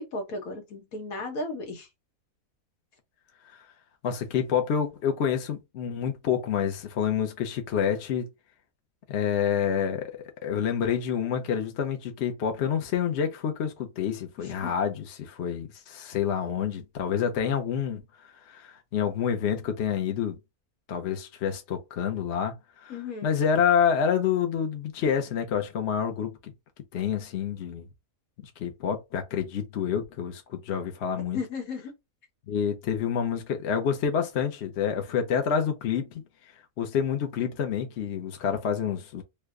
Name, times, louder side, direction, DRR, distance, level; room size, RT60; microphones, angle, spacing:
voice 1, 0.0-1.9 14.4-14.7 22.9-23.3 31.3-31.9, left 3 dB, 75° left, 1.5 m, -35 dB
voice 2, 4.0-8.3 9.1-18.0 18.5-20.4 20.9-22.9 23.2-26.5 26.9-27.8 28.6-31.4 32.5-36.2 36.8-39.2, left 8 dB, 55° left, 0.9 m, -28 dB
3.2 x 2.2 x 3.6 m
omnidirectional pair, 1.5 m